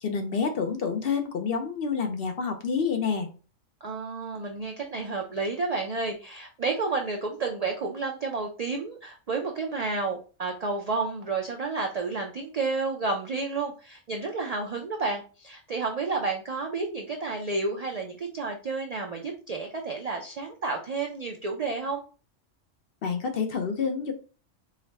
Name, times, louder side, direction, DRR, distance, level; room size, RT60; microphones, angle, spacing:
voice 1, 0.0-3.3 23.0-24.1, left 5 dB, 60° left, 5 dB, 0.7 m, -28 dB
voice 2, 3.8-22.0, right 3 dB, 60° right, 2 dB, 0.4 m, -31 dB
4.7 x 2.1 x 3.3 m, 0.36 s
omnidirectional pair, 1.3 m